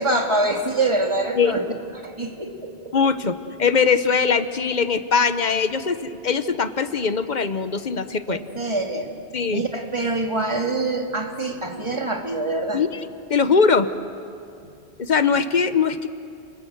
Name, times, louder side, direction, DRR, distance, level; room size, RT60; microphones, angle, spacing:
voice 1, 0.0-1.6 2.0-2.9 8.3-9.1 9.5-12.8, right 2 dB, 25° right, 3 dB, 2.1 m, -25 dB
voice 2, 2.9-8.4 9.3-9.7 12.7-13.9 15.0-16.1, left 5 dB, 45° left, 11 dB, 1.0 m, -21 dB
29.0 x 20.5 x 7.9 m, 2.5 s
omnidirectional pair, 1.1 m